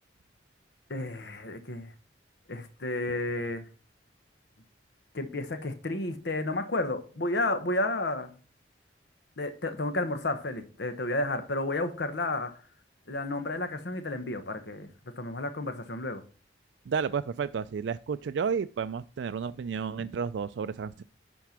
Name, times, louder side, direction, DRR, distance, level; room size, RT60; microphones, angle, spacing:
voice 1, 0.9-1.9 2.5-3.7 5.1-8.3 9.4-12.5 13.1-14.9 15.2-16.2 20.0-20.1, left 2 dB, 65° left, 1.1 m, -31 dB
voice 2, 16.9-21.0, right 6 dB, 70° right, 0.4 m, -32 dB
11.0 x 4.5 x 5.8 m
head